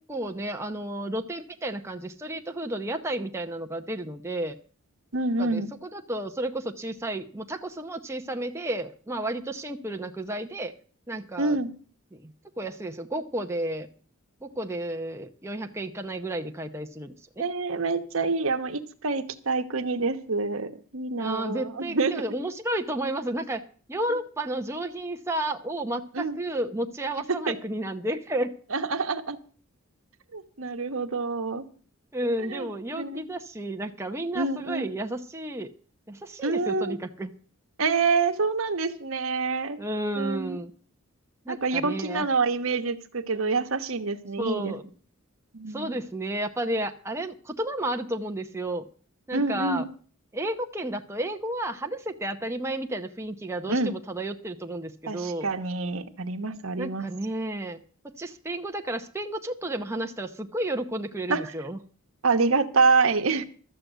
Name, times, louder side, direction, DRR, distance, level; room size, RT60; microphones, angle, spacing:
voice 1, 0.1-4.6 5.4-5.6 5.9-10.7 11.1-11.6 12.1-13.9 14.4-17.4 21.2-23.6 23.9-28.5 32.1-35.7 36.1-37.3 39.8-40.7 41.5-42.3 44.4-44.8 45.7-48.9 49.3-49.8 50.3-55.5 56.8-61.8, right 1 dB, 10° right, 5 dB, 0.7 m, -32 dB
voice 2, 5.1-5.7 11.4-11.7 17.4-22.2 26.1-26.4 28.7-29.4 30.3-31.6 32.5-32.7 33.0-33.2 34.3-34.9 36.4-37.0 37.8-39.8 40.2-40.6 41.5-44.8 45.5-45.9 49.3-49.9 53.7-53.9 55.1-57.1 61.3-61.4 62.2-63.4, right 4 dB, 65° right, 8 dB, 1.1 m, -27 dB
13.0 x 7.8 x 7.9 m, 0.41 s
head